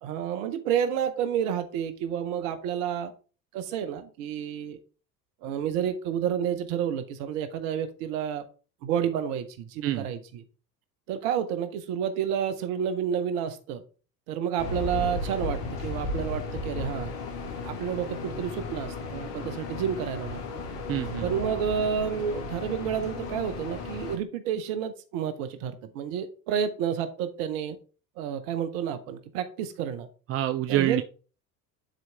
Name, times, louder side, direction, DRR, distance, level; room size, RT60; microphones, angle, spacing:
voice 1, 0.0-3.1 3.5-4.8 5.4-8.4 8.8-10.4 11.1-13.8 14.3-17.1 17.6-20.4 21.2-27.8 28.2-30.1 30.7-31.0, right 8 dB, 55° right, 10 dB, 1.2 m, -30 dB
sound 1, 14.6-24.2, left 3 dB, 70° left, 1.8 m, -35 dB
voice 2, 20.9-21.2 30.3-31.0, right 13 dB, 30° right, 10 dB, 0.4 m, -26 dB
10.5 x 4.6 x 3.5 m, 0.36 s
figure-of-eight pair, 65°, 50 cm